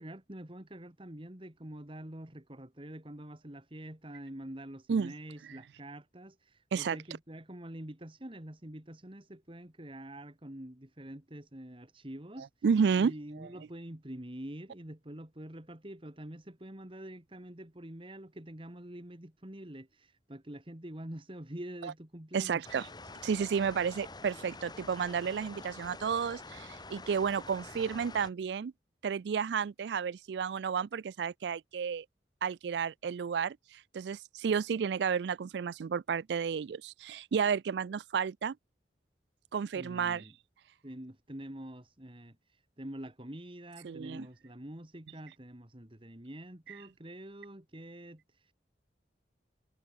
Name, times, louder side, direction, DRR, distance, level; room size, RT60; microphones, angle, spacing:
voice 1, 0.0-12.5 13.0-22.7 39.7-40.3 40.8-48.5, right 1 dB, 30° right, 2.1 m, -46 dB
voice 2, 12.6-13.5 21.8-21.9 22.3-22.9 23.2-28.7 29.0-32.1 32.4-38.6 39.5-40.2 43.8-44.3, right 6 dB, 70° right, 0.4 m, -32 dB
sound 1, 22.6-28.3, left 3 dB, 25° left, 3.6 m, -47 dB
head